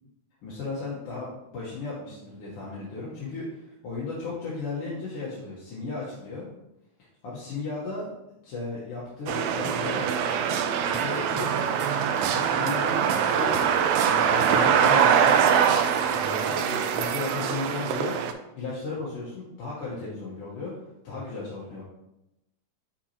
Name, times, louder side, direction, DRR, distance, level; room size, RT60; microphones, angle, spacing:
voice 1, 0.4-6.5 7.2-8.1 8.4-10.1 10.8-11.7 12.3-15.4 16.1-18.2 18.6-20.7 21.0-21.8, left 3 dB, 60° left, -6 dB, 1.8 m, -35 dB
sound 1, 9.3-18.3, right 8 dB, 80° right, 1.6 m, -23 dB
6.2 x 5.7 x 2.8 m, 0.90 s
omnidirectional pair, 3.5 m